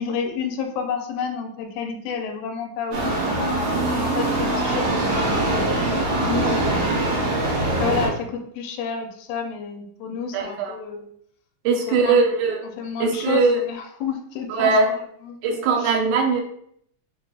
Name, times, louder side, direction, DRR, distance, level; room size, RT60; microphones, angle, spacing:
voice 1, 0.0-3.1 3.9-7.0 7.8-11.1 11.9-12.2 12.6-15.0 15.2-16.0, left 6 dB, 80° left, 4 dB, 1.7 m, -30 dB
sound 1, 2.9-8.1, right 2 dB, 65° right, 1.9 m, -23 dB
voice 2, 10.3-10.8 11.6-12.6 13.0-13.6 14.5-14.9 15.4-16.4, right 4 dB, 90° right, 3 dB, 2.0 m, -20 dB
4.4 x 3.7 x 2.3 m, 0.68 s
omnidirectional pair, 3.4 m